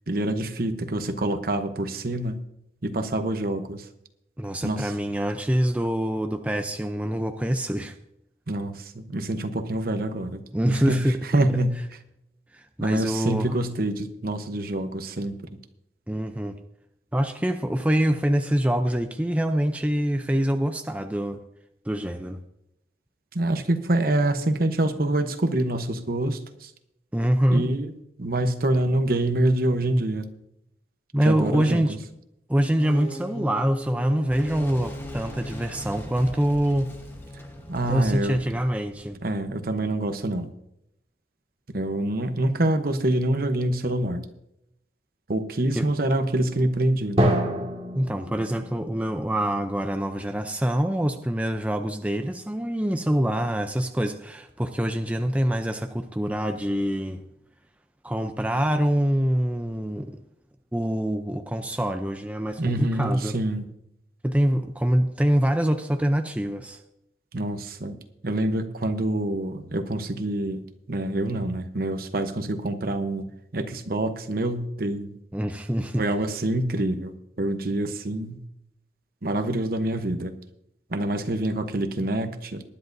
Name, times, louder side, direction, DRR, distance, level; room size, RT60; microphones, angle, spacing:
voice 1, 0.1-2.4 2.8-3.9 4.6-4.9 8.5-11.8 12.8-15.4 23.3-26.7 27.5-27.9 28.2-30.3 31.2-32.0 37.7-38.4 39.2-40.5 41.7-44.2 45.3-47.2 62.6-63.7 67.3-68.0 68.2-70.6 70.9-75.2 76.0-78.4 79.2-80.3 80.9-82.6, right 1 dB, 55° right, 8 dB, 1.0 m, -26 dB
voice 2, 4.4-8.0 10.5-11.2 12.5-13.5 16.1-16.6 17.1-21.4 21.9-22.4 27.1-27.6 31.1-32.0 32.5-36.9 37.9-39.2 45.7-45.9 47.9-57.2 58.0-60.2 60.7-63.4 64.2-66.8 75.3-76.0, equal, 10° right, 6 dB, 0.5 m, -25 dB
sound 1, 32.7-38.6, equal, 55° left, 2.7 m, -40 dB
Boom, 34.3-39.9, equal, 15° left, 1.2 m, -42 dB
Drum, 47.2-50.9, right 1 dB, 35° right, 1.9 m, -28 dB
20.0 x 10.5 x 2.7 m, 0.81 s
head